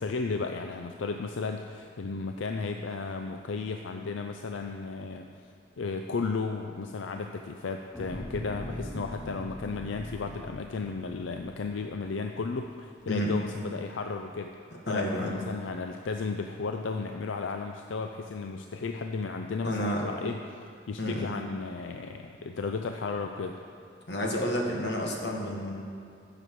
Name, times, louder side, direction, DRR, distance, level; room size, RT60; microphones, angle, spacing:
voice 1, 0.0-5.5 5.8-14.5 14.9-23.6, left 4 dB, 85° left, 5 dB, 0.5 m, -34 dB
sound 1, 7.9-12.4 12.9-13.0, equal, 10° left, 0.6 m, -42 dB
voice 2, 14.9-15.3 19.6-20.0 21.0-21.3 24.1-25.8, equal, 60° left, 0 dB, 1.6 m, -30 dB
15.5 x 6.9 x 4.7 m, 2.4 s
head